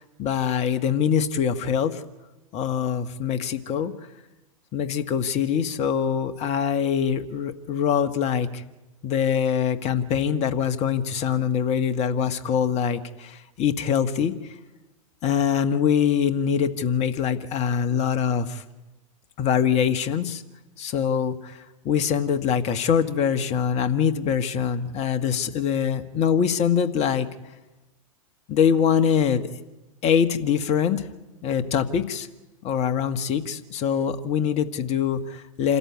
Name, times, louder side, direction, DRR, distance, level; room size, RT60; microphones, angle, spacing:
voice 1, 0.2-2.0 2.5-3.9 4.7-8.6 9.0-14.3 15.2-18.6 19.4-20.4 20.8-27.3 28.5-29.4 30.0-31.1 31.4-32.3 32.6-35.8, left 8 dB, 40° left, 10 dB, 1.6 m, -23 dB
26.5 x 14.0 x 9.5 m, 1.0 s
hypercardioid pair, 100°, 18 cm